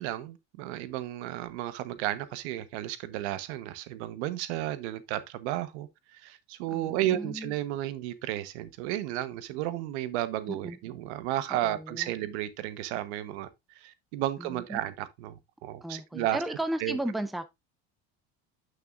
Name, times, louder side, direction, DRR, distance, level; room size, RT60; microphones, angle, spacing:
voice 1, 0.0-16.4 16.8-17.0, right 14 dB, 90° right, 1.1 m, -33 dB
voice 2, 6.7-7.5 10.5-10.8 11.5-12.1 14.4-14.8 15.8-17.4, right 1 dB, ahead, 0.7 m, -35 dB
8.8 x 6.4 x 2.4 m
cardioid pair, 145°, 33 cm